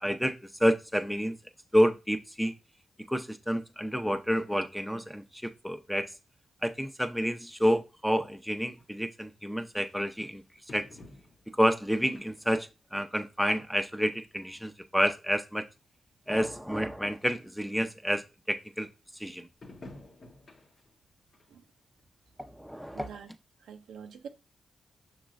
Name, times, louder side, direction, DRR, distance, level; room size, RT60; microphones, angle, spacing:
voice 1, 0.0-1.4 1.7-2.5 3.1-6.1 6.6-10.4 10.7-10.9 11.6-15.7 16.3-18.9 19.2-19.5 22.5-23.1, equal, ahead, 0.6 m, -29 dB
sound 1, 8.8-8.9 9.8-9.9 10.7-11.6 12.1-12.6 13.1-13.2 14.1-14.2 14.4-14.5 15.4-15.5 15.8-15.9 16.1-16.2 16.4-16.9 17.4-17.5 19.6-20.9 21.3-21.5 22.0-22.1, left 2 dB, 55° left, 0.9 m, -50 dB
voice 2, 22.9-23.3 23.6-24.3, right 7 dB, 85° right, 0.5 m, -45 dB
5.9 x 3.0 x 2.5 m
supercardioid pair, 50°, 0 cm